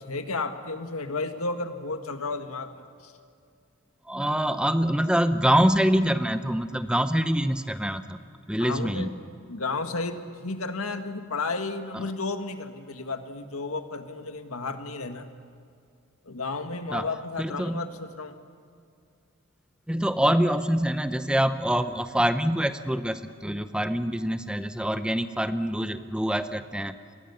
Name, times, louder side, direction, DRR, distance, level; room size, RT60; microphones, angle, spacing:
voice 1, 0.0-3.1 8.6-9.1 9.5-15.2 16.3-18.4, left 3 dB, 85° left, 7 dB, 1.8 m, -33 dB
voice 2, 4.1-8.2 8.5-9.2 11.9-12.1 16.9-17.1 17.4-17.9 19.9-27.0, equal, 5° right, 10 dB, 0.7 m, -25 dB
28.0 x 22.0 x 7.1 m, 2.4 s
head